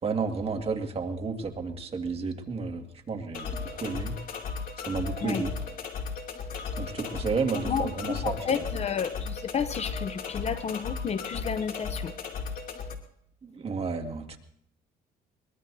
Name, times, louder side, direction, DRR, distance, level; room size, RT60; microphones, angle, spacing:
voice 1, 0.0-4.2 4.9-5.5 6.8-8.6 13.4-14.4, right 4 dB, 35° right, 4 dB, 1.9 m, -32 dB
sound 1, 3.3-12.9, left 5 dB, 60° left, 2.6 m, -36 dB
voice 2, 7.7-12.1, left 7 dB, 40° left, 12 dB, 0.7 m, -31 dB
22.5 x 21.5 x 2.7 m, 0.68 s
cardioid pair, 110°, 17 cm